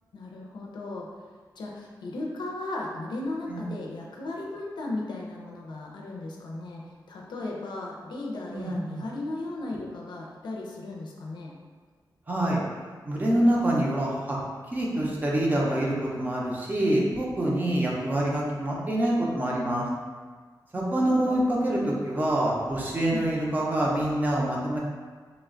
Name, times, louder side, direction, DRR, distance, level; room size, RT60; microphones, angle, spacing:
voice 1, 0.1-1.1 1.6-11.5 20.7-21.4 23.1-23.3, left 2 dB, 75° left, -2 dB, 0.5 m, -36 dB
voice 2, 8.5-9.0 12.3-12.6 13.0-14.4 14.7-19.9 20.7-24.8, right 1 dB, 25° right, -4 dB, 0.5 m, -26 dB
3.0 x 2.2 x 3.6 m, 1.5 s
wide cardioid pair, 170°, 8 cm